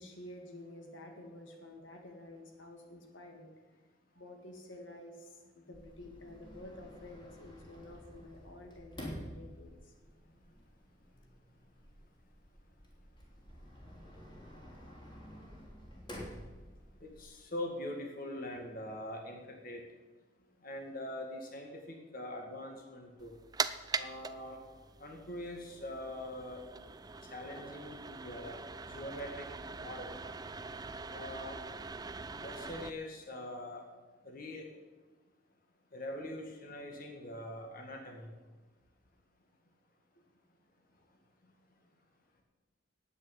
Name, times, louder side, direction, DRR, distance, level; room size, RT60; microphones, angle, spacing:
voice 1, 0.0-3.5 4.1-9.9, left 1 dB, 85° left, 3 dB, 2.3 m, -51 dB
Sliding door, 5.7-17.3, equal, 25° left, 3.1 m, -50 dB
voice 2, 17.0-19.9 20.6-23.4 23.9-24.6 25.0-26.6 27.2-30.2 31.1-31.6 32.3-33.8 34.2-34.7 35.9-38.4 41.0-41.1 41.4-41.5, left 1 dB, 50° left, 2 dB, 1.9 m, -43 dB
sound 1, 23.2-32.9, right 4 dB, 20° right, 0.5 m, -42 dB
10.0 x 8.7 x 9.4 m, 1.3 s
head